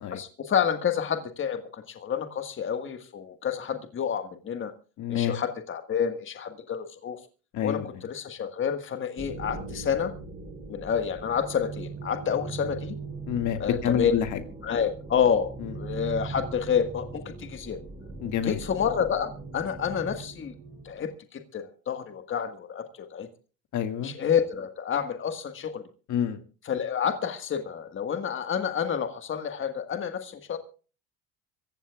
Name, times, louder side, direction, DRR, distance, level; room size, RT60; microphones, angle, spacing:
voice 1, 0.1-4.7 5.1-7.2 7.6-10.1 10.7-12.9 13.6-14.1 14.6-17.8 18.4-20.5 20.8-23.3 24.0-25.8 26.6-30.6, left 8 dB, 35° left, 8 dB, 1.7 m, -29 dB
voice 2, 5.0-5.3 7.5-7.9 13.3-14.4 15.6-15.7 18.2-18.6 23.7-24.1 26.1-26.4, left 9 dB, 60° left, 8 dB, 2.0 m, -28 dB
sound 1, 9.2-21.1, right 3 dB, 25° right, 6.6 m, -40 dB
25.5 x 15.0 x 2.4 m, 0.36 s
cardioid pair, 110°, 34 cm